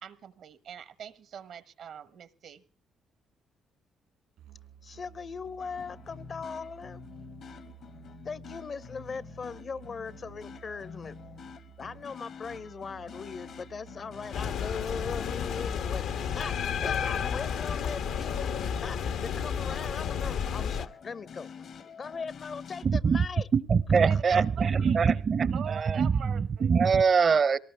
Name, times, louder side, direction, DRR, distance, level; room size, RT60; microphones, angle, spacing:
voice 1, 0.0-2.6 24.0-25.2 25.5-26.7, right 8 dB, 70° right, 1.2 m, -43 dB
Musical instrument, 4.4-19.7, right 11 dB, 85° right, 3.5 m, -53 dB
voice 2, 4.8-7.0 8.2-11.2 11.8-16.1 16.3-18.5 18.8-23.5 24.1-24.4 24.8-24.9, left 5 dB, 45° left, 0.7 m, -39 dB
sound 1, 5.6-22.9, left 6 dB, 65° left, 1.1 m, -47 dB
sound 2, 14.3-20.9, left 7 dB, 85° left, 1.1 m, -32 dB
voice 3, 22.8-23.2 23.5-27.6, right 6 dB, 45° right, 0.8 m, -23 dB
22.5 x 18.5 x 3.4 m
cardioid pair, 90°, 0 cm